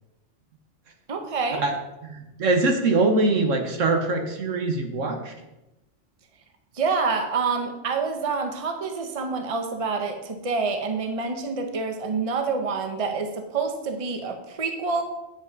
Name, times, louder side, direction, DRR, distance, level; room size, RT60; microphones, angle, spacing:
voice 1, 1.1-1.6 6.7-15.0, right 4 dB, 30° right, 5 dB, 0.9 m, -27 dB
voice 2, 2.0-5.3, right 3 dB, 75° right, 4 dB, 1.6 m, -23 dB
9.4 x 8.2 x 4.0 m, 0.99 s
omnidirectional pair, 1.3 m